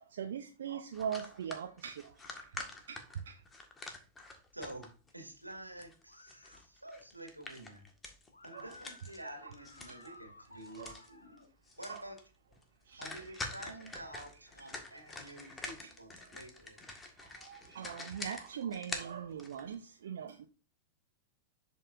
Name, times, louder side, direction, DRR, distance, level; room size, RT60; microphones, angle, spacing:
voice 1, 0.1-2.0 2.9-3.0 3.3-3.4 8.5-8.8 9.4-9.5 9.9-10.2 10.7-10.9 11.8-12.0 12.9-13.4 14.1-14.2 15.4-15.5 17.4-20.5, right 8 dB, 60° right, 7 dB, 0.6 m, -41 dB
sound 1, 0.9-5.1 5.5-10.2 10.4-11.1 11.4-11.5 11.6-12.2 12.5-12.6 13.0-19.7, left 2 dB, 15° left, 1.6 m, -46 dB
voice 2, 4.5-7.9 8.4-11.4 11.8-12.2 13.0-16.8, right 1 dB, 85° right, 4 dB, 1.8 m, -49 dB
sound 2, 6.1-6.6 8.3-11.5, left 2 dB, 80° left, 1.4 m, -57 dB
10.5 x 5.4 x 2.5 m, 0.34 s
figure-of-eight pair, 90°, 0 cm